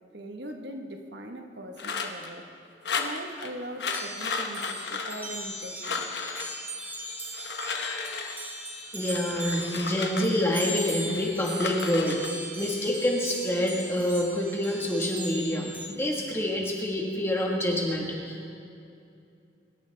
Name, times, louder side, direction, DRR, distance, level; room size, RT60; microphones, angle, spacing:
voice 1, 0.1-2.5 3.0-6.2, right 1 dB, 70° right, 4 dB, 1.3 m, -40 dB
sound 1, 1.8-2.3 2.8-3.5 3.8-5.6 5.8-6.5 7.2-8.5 9.0-10.7 11.1-12.3, left 5 dB, 65° left, 1.2 m, -34 dB
sound 2, 3.9-15.9, right 1 dB, 10° right, 1.5 m, -39 dB
voice 2, 8.9-18.5, left 1 dB, 15° left, -2 dB, 1.6 m, -27 dB
25.0 x 12.5 x 3.5 m, 2.6 s
head